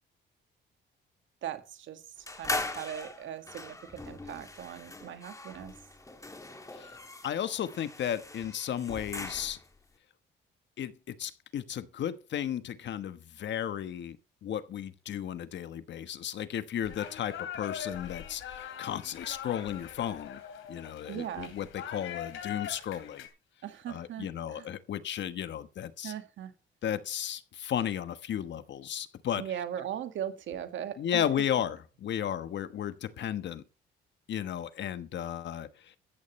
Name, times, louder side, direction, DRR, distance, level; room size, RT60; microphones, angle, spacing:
voice 1, 1.4-2.0 2.4-5.7 21.1-21.5 23.6-24.7 26.0-26.5 29.4-31.2, right 10 dB, 75° right, 1.9 m, -39 dB
sound 1, 2.3-9.8, left 2 dB, 15° left, 2.1 m, -40 dB
voice 2, 6.7-9.6 10.8-14.2 14.4-20.4 20.7-23.2 23.9-26.1 26.8-29.4 31.0-33.6 34.3-35.9, left 9 dB, 65° left, 1.2 m, -34 dB
sound 2, 16.8-23.3, left 9 dB, 85° left, 2.9 m, -42 dB
14.5 x 11.0 x 3.2 m
cardioid pair, 90°, 20 cm